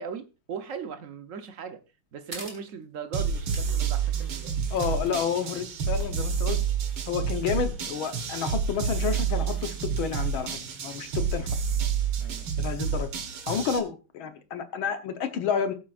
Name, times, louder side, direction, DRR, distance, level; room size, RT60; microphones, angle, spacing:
voice 1, 0.0-1.8 2.1-5.0 11.0-11.1 12.2-12.5, right 6 dB, 55° right, 0.8 m, -39 dB
sound 1, 2.3-2.6 3.5-3.8 4.1-4.2 4.7-5.1 5.8-7.0, right 2 dB, 25° right, 3.1 m, -44 dB
sound 2, 3.1-13.8, right 6 dB, 75° right, 2.1 m, -29 dB
voice 2, 4.7-6.6 7.1-10.5 10.8-11.5 12.6-13.1 13.5-15.7, left 7 dB, 70° left, 1.8 m, -30 dB
18.0 x 7.7 x 2.5 m
omnidirectional pair, 2.4 m